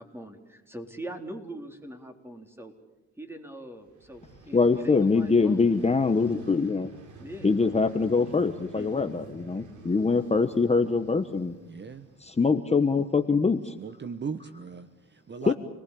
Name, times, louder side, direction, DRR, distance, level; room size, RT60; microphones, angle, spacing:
voice 1, 0.0-2.7 3.2-5.6 7.2-7.5 8.7-9.1, right 1 dB, 10° right, 5 dB, 3.9 m, -42 dB
Vehicle, 3.8-12.8, right 2 dB, 75° right, 4.0 m, -49 dB
voice 2, 4.5-6.9 7.4-11.5 12.2-13.7 15.4-15.5, left 4 dB, 20° left, 8 dB, 1.3 m, -24 dB
voice 3, 11.6-12.1 13.7-15.5, right 5 dB, 35° right, 11 dB, 1.2 m, -38 dB
28.0 x 19.5 x 8.7 m, 1.0 s
cardioid pair, 90°, 30 cm